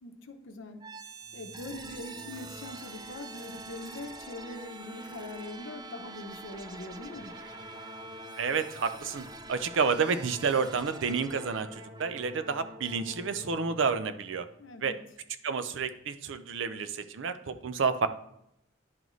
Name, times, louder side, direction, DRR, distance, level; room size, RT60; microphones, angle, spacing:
voice 1, 0.0-0.8 1.3-7.3 14.6-15.0, left 2 dB, 75° left, 6 dB, 0.8 m, -42 dB
sound 1, 0.8-14.7, right 2 dB, 20° right, 0.4 m, -45 dB
voice 2, 8.4-14.5 14.8-15.0 15.4-18.1, right 5 dB, 70° right, 11 dB, 0.5 m, -30 dB
10.5 x 3.9 x 3.1 m, 0.79 s
head